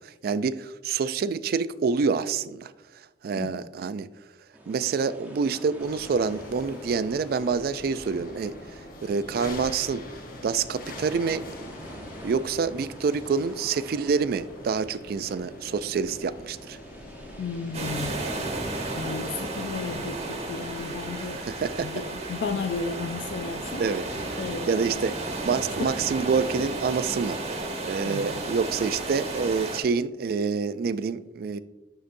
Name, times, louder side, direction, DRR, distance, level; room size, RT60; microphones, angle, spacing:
voice 1, 0.0-4.1 4.7-8.5 9.0-10.0 10.4-11.5 12.2-16.8 21.3-21.9 23.8-24.1 24.3-25.2 25.4-27.4 27.8-31.6, right 5 dB, 60° right, 14 dB, 0.3 m, -27 dB
sound 1, 4.5-23.0, right 1 dB, 10° right, 0.8 m, -48 dB
sound 2, 5.8-24.5, left 1 dB, 55° left, 0.9 m, -44 dB
voice 2, 17.4-18.2 19.0-21.4 21.8-23.8 24.4-24.7 25.8-25.9 28.0-28.4, left 4 dB, 80° left, 7 dB, 0.3 m, -33 dB
sound 3, 17.7-29.8, right 2 dB, 40° right, 1.0 m, -33 dB
11.0 x 3.9 x 2.6 m, 1.0 s
head